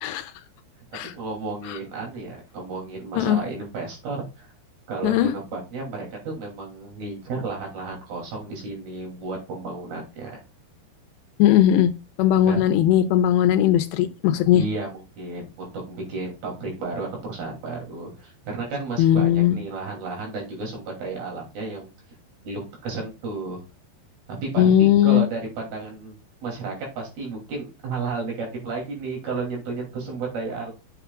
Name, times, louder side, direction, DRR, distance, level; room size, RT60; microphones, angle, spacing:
voice 1, 0.0-0.3 0.9-1.1 1.7-1.8 3.1-3.4 5.0-5.3 11.4-11.9 12.2-14.6 19.0-19.6 24.6-25.3, left 11 dB, 85° left, 10 dB, 2.8 m, -18 dB
voice 2, 1.1-4.3 4.9-10.4 12.5-12.6 14.5-21.9 22.4-23.6 24.4-26.2 26.4-30.7, right 3 dB, 55° right, 0 dB, 4.6 m, -32 dB
10.5 x 7.1 x 2.4 m, 0.28 s
omnidirectional pair, 5.1 m